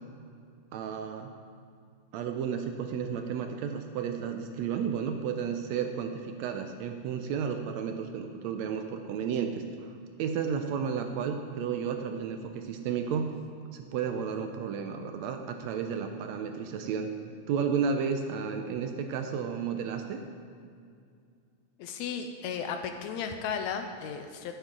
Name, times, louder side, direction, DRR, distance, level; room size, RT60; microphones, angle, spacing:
voice 1, 0.7-1.3 2.1-9.9 10.2-13.3 13.7-17.1 17.5-20.2, right 7 dB, 80° right, 6 dB, 1.7 m, -32 dB
voice 2, 21.8-24.6, left 6 dB, 80° left, 6 dB, 1.8 m, -35 dB
14.5 x 8.1 x 3.7 m, 2.3 s
omnidirectional pair, 3.4 m